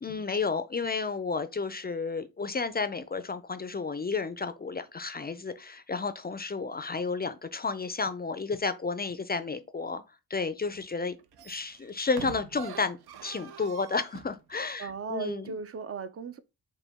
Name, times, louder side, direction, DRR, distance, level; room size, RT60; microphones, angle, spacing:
voice 1, 0.0-10.0 10.3-11.2 11.4-15.6, left 4 dB, 25° left, 0.4 m, -32 dB
sound 1, 10.7-10.9 11.2-14.4 14.9-15.0, right 9 dB, 85° right, 0.6 m, -45 dB
voice 2, 14.8-16.4, right 5 dB, 40° right, 0.4 m, -36 dB
5.0 x 2.2 x 3.5 m
cardioid pair, 75°, 37 cm